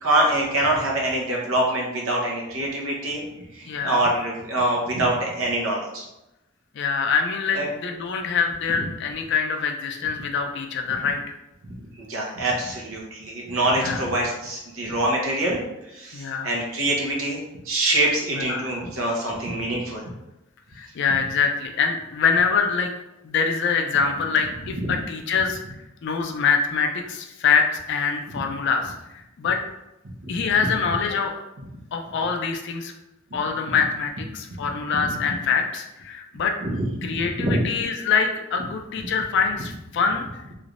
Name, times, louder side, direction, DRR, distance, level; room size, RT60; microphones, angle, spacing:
voice 1, 0.0-3.2 3.6-6.0 7.5-7.7 11.7-15.6 15.9-17.4 17.7-20.0 24.8-24.9 30.3-30.4 34.9-35.0 36.6-36.9 37.3-37.6, right 1 dB, 75° right, -2 dB, 0.9 m, -25 dB
voice 2, 3.7-4.0 6.8-11.3 13.7-14.0 16.1-16.5 18.3-18.7 20.8-22.9 23.2-25.6 26.0-29.6 30.3-31.3 31.9-32.9 33.3-36.6 37.0-40.2, left 5 dB, 60° left, 4 dB, 0.4 m, -24 dB
3.2 x 3.0 x 2.5 m, 0.93 s
head